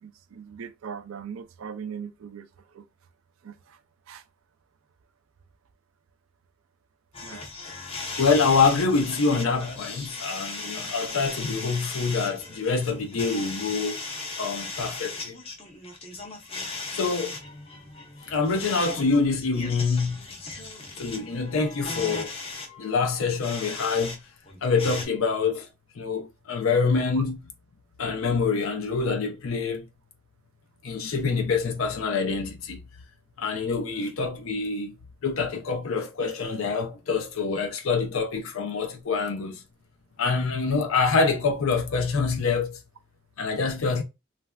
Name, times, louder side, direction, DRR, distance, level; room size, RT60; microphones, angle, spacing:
voice 1, 0.0-2.5 2.7-2.8 3.4-3.8 4.1-4.2 7.2-7.4 27.2-27.3, right 7 dB, 85° right, 0.4 m, -39 dB
sound 1, 7.1-24.2 24.5-25.1, left 3 dB, 30° left, 0.6 m, -37 dB
voice 2, 8.2-14.0 14.4-15.3 16.9-17.4 18.3-20.2 21.0-22.3 22.8-24.2 24.6-25.7 26.0-27.4 28.0-29.8 30.8-32.8 33.4-34.9 35.2-39.6 40.2-42.8 43.4-44.0, left 4 dB, 80° left, 0.5 m, -25 dB
3.2 x 2.4 x 2.2 m
head